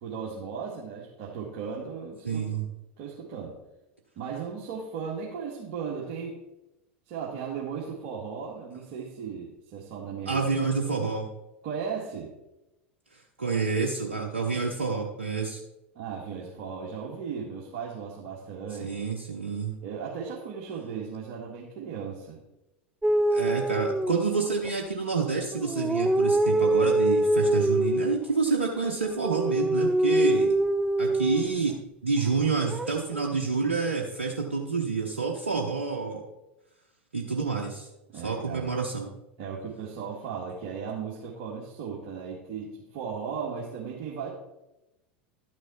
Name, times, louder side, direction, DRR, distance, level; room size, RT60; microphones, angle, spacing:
voice 1, 0.0-2.5 3.0-3.5 4.2-6.4 7.1-10.4 11.6-12.3 16.0-18.9 19.8-22.4 38.1-38.8 39.4-44.3, right 6 dB, 55° right, -4 dB, 2.0 m, -36 dB
voice 2, 2.2-2.6 10.3-11.3 13.1-15.6 18.8-19.7 23.3-30.5 31.0-31.7 32.0-36.2 37.1-37.9 38.2-39.1, right 4 dB, 90° right, 1 dB, 0.9 m, -28 dB
sound 1, 23.0-24.7 25.5-28.2 29.0-31.6 32.7-33.3, right 1 dB, 10° right, 0.4 m, -24 dB
12.0 x 6.1 x 4.4 m, 0.94 s
hypercardioid pair, 85°, 7 cm